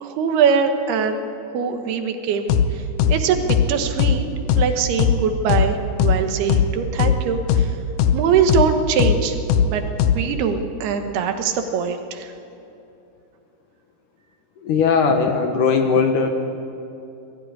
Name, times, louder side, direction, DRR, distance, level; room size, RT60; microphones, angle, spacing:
voice 1, 0.0-1.2 1.5-2.8 3.1-4.2 4.6-7.8 8.1-9.4 9.6-9.8 10.1-12.3, right 6 dB, 80° right, 6 dB, 3.2 m, -22 dB
sound 1, 2.5-2.7 3.0-3.2 3.5-3.7 4.0-4.2 4.5-4.7 5.0-5.2 5.5-5.7 6.0-6.2 6.5-6.7 7.0-7.2 7.5-7.7 8.0-8.2 8.5-8.7 9.0-9.2 9.5-9.7 10.0-10.2, left 9 dB, 85° left, 1.7 m, -17 dB
voice 2, 14.6-16.3, left 5 dB, 65° left, 5 dB, 2.4 m, -18 dB
20.5 x 15.0 x 9.6 m, 2.8 s
omnidirectional pair, 4.6 m